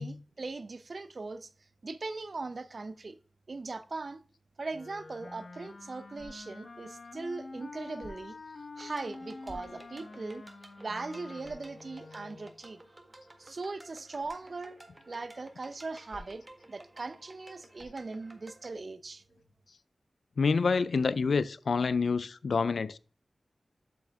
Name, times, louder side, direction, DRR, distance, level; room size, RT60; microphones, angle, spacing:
voice 1, 0.0-1.5 1.8-3.2 3.5-4.2 4.6-8.4 8.8-10.4 10.8-12.8 13.4-19.2, right 3 dB, 55° right, 0.6 m, -40 dB
Wind instrument woodwind instrument, 4.7-12.6, left 3 dB, 65° left, 1.0 m, -47 dB
sound 1, 6.1-6.7 8.0-8.5 9.4-10.1 10.6-10.7 11.4-11.8 14.2-14.4 16.1-16.6 17.7-18.1, equal, ahead, 2.8 m, -52 dB
sound 2, 8.7-18.7, right 1 dB, 25° right, 1.6 m, -55 dB
voice 2, 20.4-23.0, left 4 dB, 85° left, 0.4 m, -27 dB
7.6 x 7.6 x 3.5 m
wide cardioid pair, 70°, 0 cm